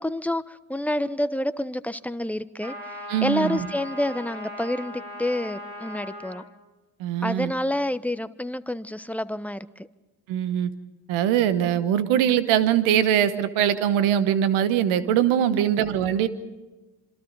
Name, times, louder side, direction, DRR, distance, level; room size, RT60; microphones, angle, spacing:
voice 1, 0.0-6.4 7.2-9.9 15.5-15.9, left 1 dB, 5° left, 1.1 m, -28 dB
sound 1, 2.6-6.5, left 1 dB, 50° right, 7.5 m, -38 dB
voice 2, 3.1-3.7 7.0-7.5 10.3-10.7 11.1-16.3, right 10 dB, 90° right, 1.3 m, -22 dB
27.0 x 26.0 x 4.1 m
hypercardioid pair, 45°, 47 cm